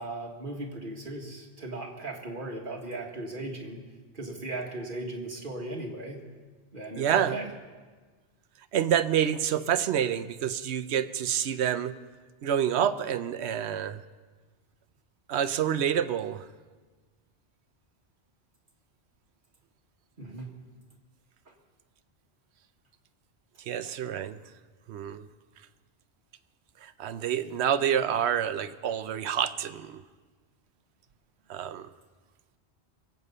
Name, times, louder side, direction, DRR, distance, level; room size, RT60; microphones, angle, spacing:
voice 1, 0.0-3.8 4.1-6.2 6.7-7.5 20.2-20.5, right 2 dB, 50° right, 0 dB, 2.0 m, -37 dB
voice 2, 6.9-7.4 8.7-11.9 12.4-14.0 15.3-16.5 23.6-24.4 24.9-25.3 26.8-30.0 31.5-31.9, right 9 dB, 85° right, 13 dB, 0.9 m, -28 dB
22.5 x 8.3 x 5.5 m, 1.4 s
omnidirectional pair, 1.1 m